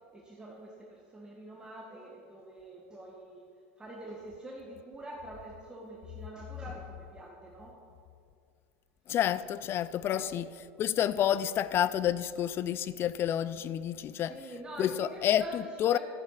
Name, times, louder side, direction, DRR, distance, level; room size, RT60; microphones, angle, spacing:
voice 1, 0.1-3.4 3.8-7.7 10.1-10.3 14.3-15.5 15.9-16.0, right 2 dB, 10° right, 1.8 m, -46 dB
voice 2, 9.1-14.4 14.8-16.0, left 10 dB, 35° left, 0.5 m, -29 dB
12.5 x 10.5 x 5.9 m
supercardioid pair, 115°, 7 cm